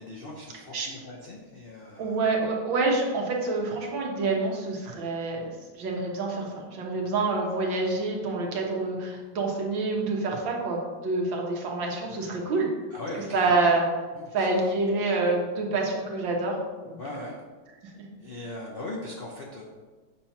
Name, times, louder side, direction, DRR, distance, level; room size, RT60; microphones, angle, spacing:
voice 1, 0.0-2.2 12.9-13.7 14.1-14.7 17.0-17.4 18.2-19.6, left 2 dB, 65° left, -3 dB, 0.5 m, -39 dB
voice 2, 2.0-12.7 13.3-13.8 14.3-16.6 16.8-17.0 17.8-17.9, right 3 dB, 85° right, -1 dB, 1.9 m, -27 dB
7.2 x 2.9 x 5.7 m, 1.4 s
omnidirectional pair, 2.0 m